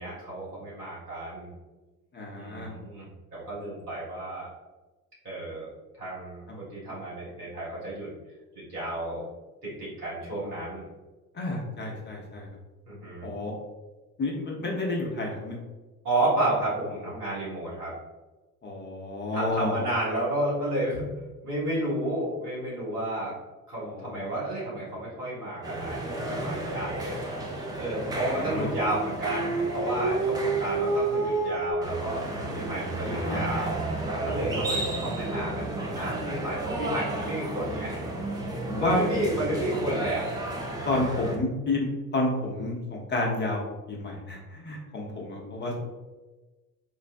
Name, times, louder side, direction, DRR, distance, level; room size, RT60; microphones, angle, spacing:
voice 1, 0.0-1.5 2.3-4.5 5.2-5.7 6.0-8.1 8.5-9.2 9.6-10.8 12.9-13.3 16.0-17.9 19.3-21.1 21.4-23.3 23.7-27.2 27.7-32.2 32.5-33.8 34.2-37.9 38.8-40.2 40.9-41.3, right 1 dB, 85° right, -9 dB, 1.4 m, -31 dB
voice 2, 2.1-2.7 11.3-12.5 13.2-13.5 14.2-15.6 18.6-19.8 23.8-24.3 28.1-28.7 33.0-33.4 34.5-34.6 38.6-39.0 40.8-43.6 43.9-45.8, left 2 dB, 25° left, -1 dB, 0.7 m, -30 dB
sound 1, 25.6-41.4, right 1 dB, 10° right, 0.3 m, -33 dB
Dog, 28.3-31.7, right 3 dB, 25° right, 0.8 m, -29 dB
3.9 x 2.1 x 2.6 m, 1.2 s
figure-of-eight pair, 60°, 45 cm